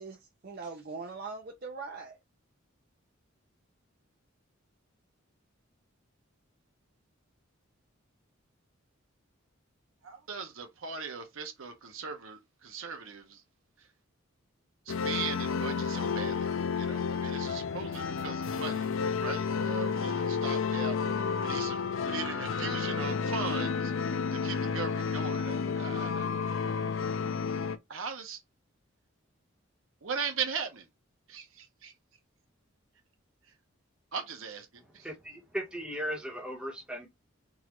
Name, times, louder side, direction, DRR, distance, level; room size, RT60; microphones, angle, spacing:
voice 1, 0.0-2.2, right 4 dB, 45° right, 0.6 m, -41 dB
voice 2, 10.0-13.4 14.9-16.5 16.7-18.9 19.2-21.0 21.4-23.9 24.3-26.3 27.9-28.4 30.0-30.9 31.3-31.9 34.1-34.7 34.9-35.1, right 5 dB, 75° right, 0.8 m, -39 dB
sound 1, 14.9-27.8, left 5 dB, 70° left, 0.5 m, -31 dB
voice 3, 34.7-37.1, equal, 5° right, 1.1 m, -37 dB
3.9 x 2.5 x 3.0 m
head